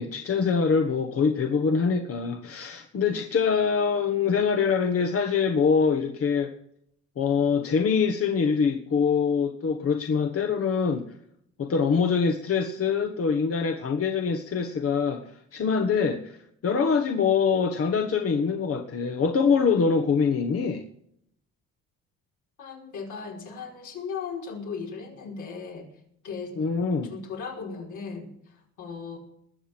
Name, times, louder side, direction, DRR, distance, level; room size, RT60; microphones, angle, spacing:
voice 1, 0.0-6.5 7.2-11.1 11.6-15.2 15.5-16.4 16.6-20.8 26.6-27.1, left 5 dB, 50° left, 1.5 m, -24 dB
voice 2, 22.6-25.9 26.2-26.6 27.0-29.2, left 5 dB, 80° left, 5.1 m, -37 dB
20.5 x 7.2 x 5.9 m
cardioid pair, 90°, 30 cm